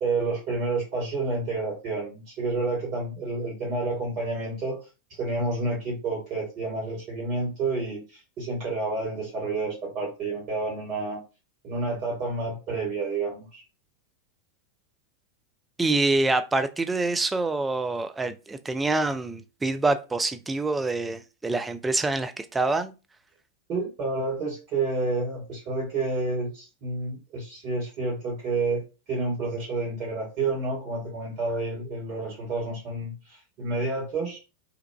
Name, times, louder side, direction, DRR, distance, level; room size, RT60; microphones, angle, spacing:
voice 1, 0.0-4.8 5.2-8.0 8.4-11.2 11.6-13.4 23.7-28.8 29.1-33.1 33.6-34.4, right 3 dB, 40° right, 1.3 m, -29 dB
voice 2, 15.8-22.9, right 3 dB, 10° right, 0.3 m, -26 dB
2.9 x 2.3 x 2.2 m
figure-of-eight pair, 90°, 0 cm